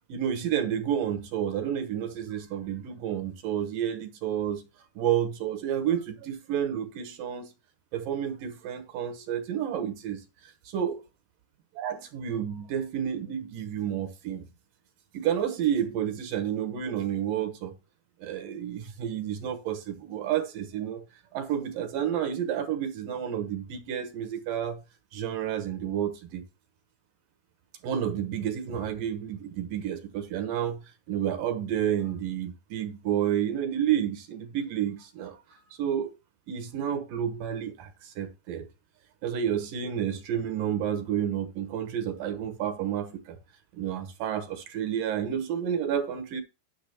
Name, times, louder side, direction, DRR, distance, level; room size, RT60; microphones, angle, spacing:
voice 1, 0.1-4.6 5.0-7.5 7.9-11.0 11.8-14.4 15.1-17.7 18.2-21.0 21.3-24.8 25.1-26.4 27.8-30.8 31.1-36.1 36.5-38.7 39.2-43.4 43.7-46.4, right 9 dB, 70° right, 2.4 m, -30 dB
10.0 x 3.7 x 6.7 m
omnidirectional pair, 4.5 m